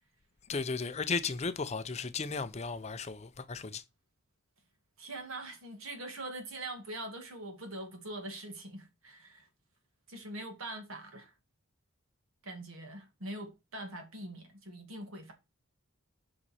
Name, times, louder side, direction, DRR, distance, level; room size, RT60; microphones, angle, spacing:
voice 1, 0.5-3.8, left 4 dB, 30° left, 0.5 m, -35 dB
voice 2, 5.0-9.5 10.1-11.3 12.4-15.3, right 1 dB, 70° right, 2.0 m, -43 dB
7.6 x 5.5 x 4.2 m
head